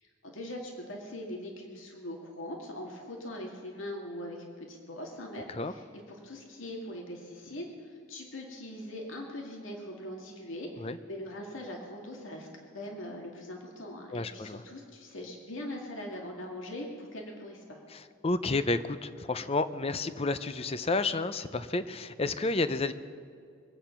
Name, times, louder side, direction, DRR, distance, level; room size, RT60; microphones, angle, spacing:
voice 1, 0.0-12.5 12.7-17.8, left 1 dB, 75° left, 0 dB, 2.3 m, -41 dB
voice 2, 14.1-14.6 17.9-22.9, left 3 dB, 30° left, 13 dB, 0.6 m, -31 dB
23.5 x 9.0 x 5.9 m, 2.4 s
head